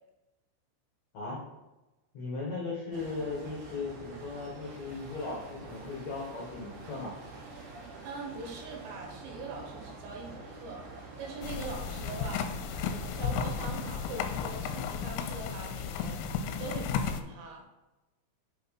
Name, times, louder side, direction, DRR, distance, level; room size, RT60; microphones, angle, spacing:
voice 1, 2.1-7.1, left 3 dB, 70° left, -4 dB, 1.6 m, -37 dB
sound 1, 2.9-14.8, right 3 dB, 60° right, 4.2 m, -47 dB
voice 2, 7.8-10.8 11.2-12.4 12.8-17.6, right 4 dB, 80° right, -1 dB, 4.3 m, -42 dB
sound 2, 11.4-17.2, left 6 dB, 90° left, 3.3 m, -34 dB
9.5 x 5.6 x 4.2 m, 1.0 s
omnidirectional pair, 5.8 m